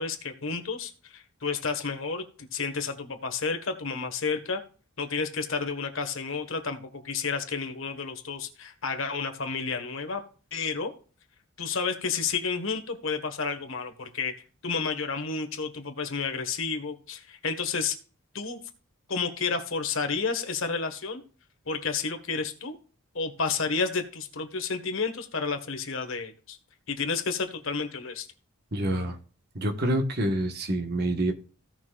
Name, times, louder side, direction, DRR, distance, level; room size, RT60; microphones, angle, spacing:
voice 1, 0.0-4.6 5.0-10.2 10.5-10.9 11.6-14.3 14.6-18.0 18.3-18.6 19.1-21.2 21.7-22.8 23.1-26.6 26.9-28.3, left 5 dB, 65° left, 7 dB, 1.5 m, -31 dB
voice 2, 28.7-29.2 29.5-31.3, right 1 dB, 45° right, 5 dB, 1.3 m, -27 dB
16.5 x 6.0 x 2.4 m, 0.38 s
head